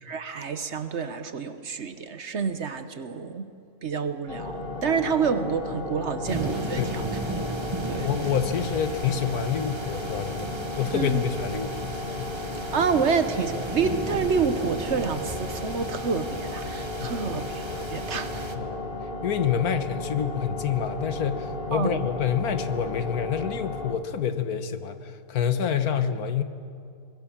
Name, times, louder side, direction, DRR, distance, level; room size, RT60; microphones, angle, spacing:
voice 1, 0.0-3.5 3.8-7.1 7.8-8.1 10.9-11.2 12.7-18.4 21.7-22.1, right 6 dB, 50° right, 10 dB, 1.1 m, -28 dB
sound 1, 4.3-23.9, left 2 dB, 35° left, 1.6 m, -34 dB
sound 2, 6.3-18.5, right 2 dB, 20° right, 0.9 m, -36 dB
voice 2, 6.8-7.1 8.0-10.5 10.8-11.9 12.2-12.4 17.0-17.3 18.5-18.8 19.2-26.4, left 8 dB, 75° left, 10 dB, 1.5 m, -27 dB
24.0 x 20.0 x 7.3 m, 2.5 s
omnidirectional pair, 1.6 m